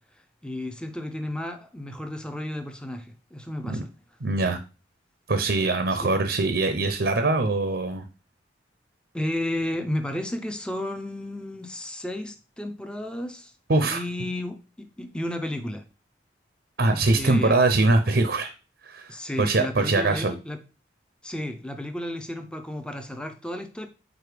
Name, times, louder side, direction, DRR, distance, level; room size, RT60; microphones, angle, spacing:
voice 1, 0.4-3.9 6.0-6.1 9.1-13.5 13.8-15.8 17.1-17.6 19.1-20.6 21.2-23.9, left 1 dB, 5° left, 0.5 m, -33 dB
voice 2, 4.2-4.6 5.3-8.1 13.7-14.0 16.8-18.5 18.8-20.3, right 2 dB, 60° right, 0.7 m, -23 dB
4.9 x 4.2 x 4.9 m
head